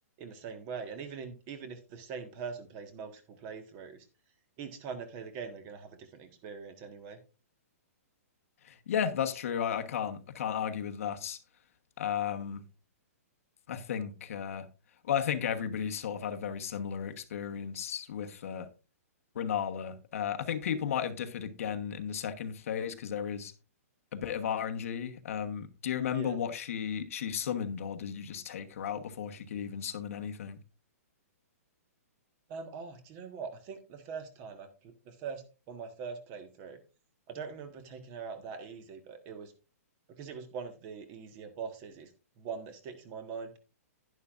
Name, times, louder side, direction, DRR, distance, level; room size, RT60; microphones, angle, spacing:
voice 1, 0.2-4.1 4.6-7.2 26.1-26.4 32.5-36.8 37.3-39.5 40.2-42.1 42.4-43.6, right 5 dB, 30° right, 1.6 m, -42 dB
voice 2, 8.6-11.4 12.0-12.6 13.7-14.7 15.0-18.7 19.3-23.5 24.1-30.6, left 8 dB, 60° left, 1.2 m, -34 dB
11.0 x 10.5 x 2.5 m
hypercardioid pair, 155°, 8 cm